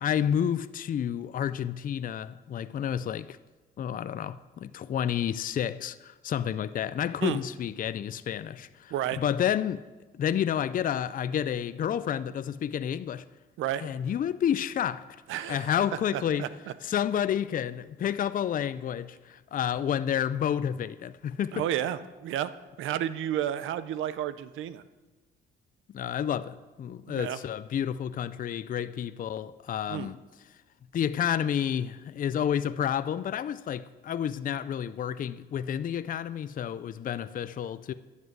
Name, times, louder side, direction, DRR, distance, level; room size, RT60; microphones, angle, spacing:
voice 1, 0.0-3.4 3.8-9.8 10.1-13.2 13.8-15.0 15.5-16.5 16.8-21.6 25.9-30.2 30.9-37.9, left 9 dB, 45° left, 0.4 m, -30 dB
voice 2, 15.3-15.7 16.1-16.5 21.5-22.5 22.8-24.8 27.1-27.4 29.9-30.1, right 11 dB, 85° right, 0.7 m, -31 dB
11.0 x 7.4 x 7.9 m
cardioid pair, 90°, 20 cm